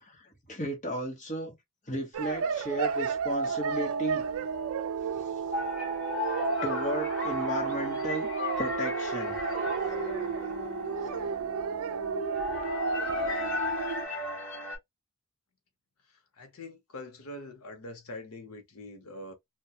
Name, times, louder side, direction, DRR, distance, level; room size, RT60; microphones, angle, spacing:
voice 1, 0.0-1.6 1.9-4.2 6.6-8.3 8.6-9.4, equal, 35° left, 1.0 m, -34 dB
sound 1, 2.1-14.0, right 6 dB, 75° right, 0.4 m, -32 dB
sound 2, 5.5-14.8, left 2 dB, 55° left, 1.0 m, -35 dB
voice 2, 16.1-19.3, left 1 dB, 80° left, 0.8 m, -44 dB
2.3 x 2.2 x 2.8 m
head